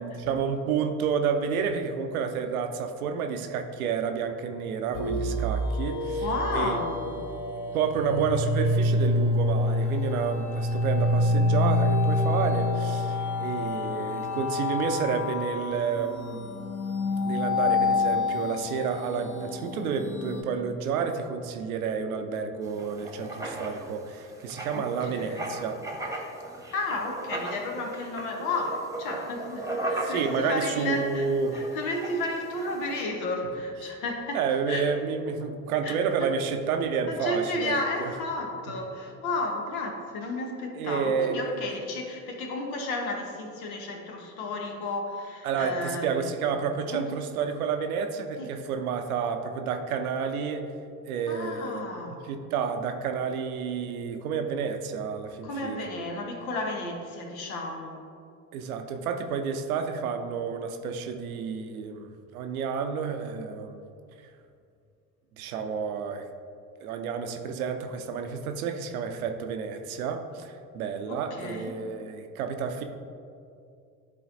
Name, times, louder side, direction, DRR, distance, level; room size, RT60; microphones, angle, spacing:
voice 1, 0.0-6.3 6.5-6.8 7.7-16.5 17.2-25.8 30.0-31.6 34.3-38.1 40.8-41.8 45.4-50.7 51.0-51.9 52.3-55.9 58.5-63.8 65.4-66.2 66.8-72.8, right 6 dB, 80° right, 6 dB, 0.6 m, -30 dB
sound 1, 4.9-20.4, left 2 dB, 45° left, 1.0 m, -27 dB
voice 2, 6.2-7.2 24.7-25.5 26.7-34.9 35.8-36.3 37.1-46.4 46.9-47.1 48.4-48.5 51.3-52.2 55.4-58.1 71.1-71.8, left 2 dB, 75° left, 2 dB, 1.0 m, -33 dB
Writing, 22.6-33.0, right 2 dB, 10° right, 1.0 m, -37 dB
10.5 x 3.8 x 2.5 m, 2.4 s
figure-of-eight pair, 55°, 42 cm